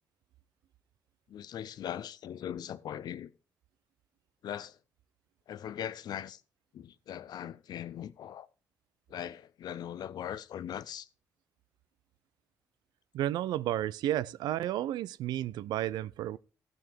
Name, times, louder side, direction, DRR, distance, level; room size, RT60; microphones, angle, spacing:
voice 1, 1.3-3.3 4.4-4.8 5.5-6.4 6.7-8.5 9.1-11.1, left 10 dB, 70° left, 0.6 m, -40 dB
voice 2, 13.1-16.4, right 13 dB, 80° right, 0.4 m, -32 dB
14.5 x 6.1 x 4.6 m
supercardioid pair, 45°, 7 cm